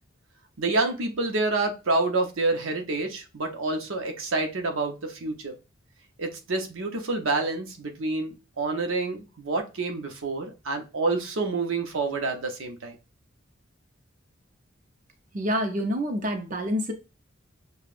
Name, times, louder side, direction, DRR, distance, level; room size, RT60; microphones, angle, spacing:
voice 1, 0.6-5.5 6.2-13.0, right 3 dB, 85° right, 0.8 m, -28 dB
voice 2, 15.3-16.9, equal, 40° right, 0.7 m, -27 dB
6.7 x 2.3 x 2.5 m
head